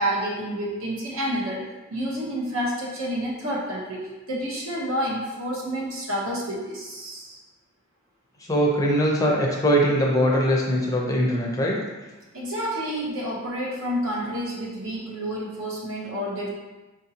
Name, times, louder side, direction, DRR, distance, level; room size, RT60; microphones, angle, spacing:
voice 1, 0.0-7.4 12.3-16.5, equal, 65° right, -4 dB, 0.9 m, -29 dB
voice 2, 8.5-11.8, equal, 15° left, -3 dB, 0.5 m, -21 dB
4.9 x 2.6 x 2.8 m, 1.2 s
head